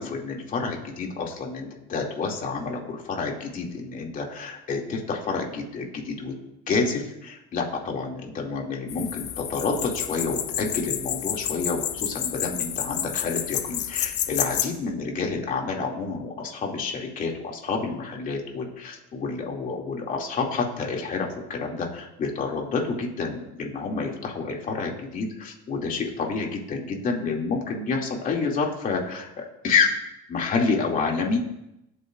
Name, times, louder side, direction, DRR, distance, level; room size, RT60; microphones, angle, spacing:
voice 1, 0.0-6.3 6.7-30.0 30.3-31.4, left 4 dB, 45° left, 0 dB, 2.5 m, -29 dB
sound 1, 8.9-14.7, left 10 dB, 60° left, 0.9 m, -30 dB
20.0 x 8.5 x 2.5 m, 0.85 s
cardioid pair, 115°, 20 cm